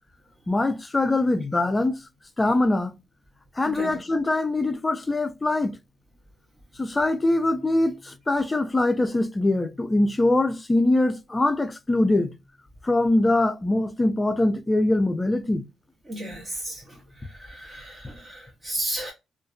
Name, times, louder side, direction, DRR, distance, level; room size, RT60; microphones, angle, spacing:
voice 1, 0.5-2.0 2.4-2.9 3.6-5.7 6.8-12.3 12.8-15.6, left 2 dB, 20° left, 0.4 m, -23 dB
voice 2, 3.7-4.0 16.1-16.8 17.4-19.1, right 1 dB, 25° right, 0.8 m, -33 dB
2.6 x 2.4 x 2.3 m
cardioid pair, 90°, 0 cm